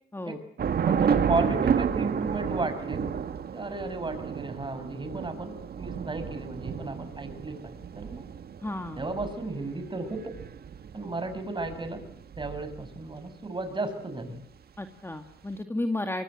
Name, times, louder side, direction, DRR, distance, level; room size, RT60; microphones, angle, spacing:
Thunder / Rain, 0.6-13.1, right 7 dB, 50° right, 1.8 m, -31 dB
voice 1, 0.8-3.1 3.5-8.2 9.0-10.3 10.9-12.0 12.4-14.4, right 2 dB, 25° right, 9 dB, 6.5 m, -34 dB
voice 2, 8.6-9.0 14.8-16.2, left 2 dB, 10° left, 6 dB, 2.1 m, -32 dB
24.5 x 23.0 x 7.6 m, 0.69 s
cardioid pair, 90°, 20 cm